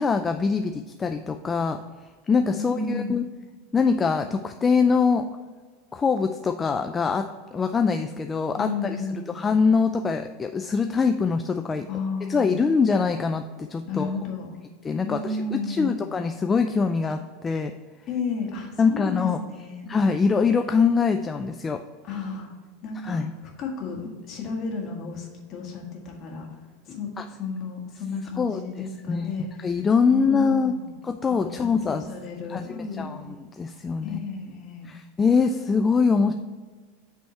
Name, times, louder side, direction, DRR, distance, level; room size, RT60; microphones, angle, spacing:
voice 1, 0.0-1.8 2.3-3.3 3.7-5.3 5.9-7.3 7.5-9.0 9.4-11.9 12.3-14.1 14.8-15.2 15.5-17.7 18.8-19.4 19.9-21.8 23.1-23.3 27.2-27.3 28.4-28.6 29.1-29.3 29.6-30.7 31.0-32.0 32.5-32.6 33.0-33.2 33.6-34.2 34.9-36.3, left 5 dB, 20° left, 7 dB, 0.3 m, -23 dB
voice 2, 2.5-3.2 8.6-9.4 11.9-12.6 13.8-14.5 15.0-16.1 18.1-19.9 22.0-22.5 22.8-26.6 26.8-30.9 31.3-33.3 34.0-34.9, left 4 dB, 45° left, 0 dB, 1.7 m, -33 dB
7.7 x 3.5 x 4.3 m, 1.4 s
hypercardioid pair, 90°, 0 cm